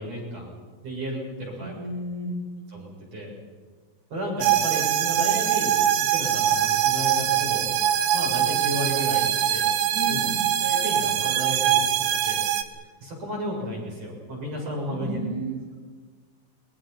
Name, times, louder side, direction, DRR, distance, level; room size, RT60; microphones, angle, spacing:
voice 1, 0.0-1.7 2.7-3.3 4.1-7.7 8.1-9.7 10.1-10.2 10.6-12.4 13.0-15.2, equal, 45° right, -3 dB, 8.2 m, -33 dB
voice 2, 1.6-2.4 9.9-10.4 14.9-15.6, right 1 dB, 10° right, -2 dB, 3.0 m, -32 dB
sound 1, 4.4-12.6, right 10 dB, 75° right, 2.6 m, -23 dB
29.0 x 22.5 x 5.9 m, 1.4 s
omnidirectional pair, 4.1 m